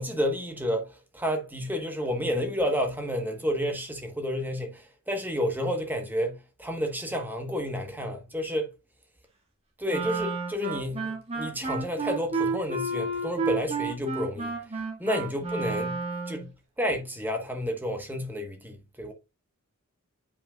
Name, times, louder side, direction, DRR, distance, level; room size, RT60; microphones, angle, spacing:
voice 1, 0.0-8.7 9.8-14.5 15.0-16.4 16.8-19.1, equal, 10° right, 1.2 m, -30 dB
Wind instrument woodwind instrument, 9.9-16.5, right 3 dB, 25° right, 1.9 m, -31 dB
8.4 x 5.2 x 2.4 m
head